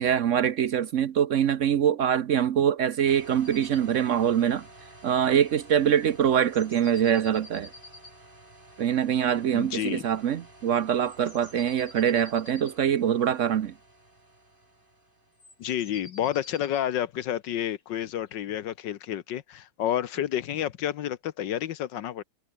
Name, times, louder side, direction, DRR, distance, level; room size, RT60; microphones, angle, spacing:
voice 1, 0.0-4.6 5.0-7.7 8.8-13.7, right 9 dB, 65° right, 0.7 m, -24 dB
sound 1, 3.1-15.7, right 1 dB, 25° right, 5.3 m, -52 dB
sound 2, 3.4-3.9 4.1-4.2 4.5-4.6 4.8-5.9 6.3-8.2 10.8-12.8 15.4-18.4, left 2 dB, 45° left, 5.9 m, -50 dB
voice 2, 9.5-10.0 15.6-22.2, left 11 dB, 70° left, 1.5 m, -30 dB
omnidirectional pair, 2.1 m